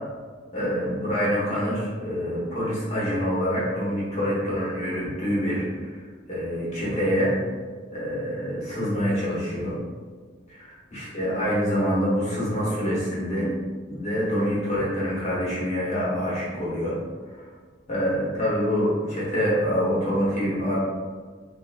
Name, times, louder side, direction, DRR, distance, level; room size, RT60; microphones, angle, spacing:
voice 1, 0.5-6.0 6.3-7.3 7.9-9.7 10.5-13.5 13.9-16.9 17.3-17.4 17.9-20.8, equal, 35° left, -8 dB, 0.9 m, -26 dB
3.6 x 2.2 x 2.4 m, 1.5 s
head